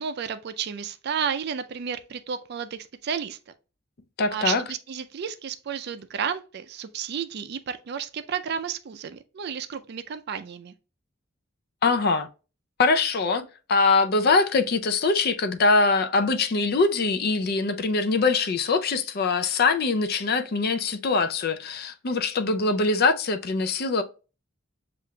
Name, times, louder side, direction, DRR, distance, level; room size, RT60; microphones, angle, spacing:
voice 1, 0.0-3.4 4.3-10.7, right 7 dB, 55° right, 0.4 m, -32 dB
voice 2, 4.2-4.6 11.8-12.3 12.8-24.0, left 3 dB, 50° left, 0.5 m, -23 dB
7.3 x 2.5 x 2.2 m
head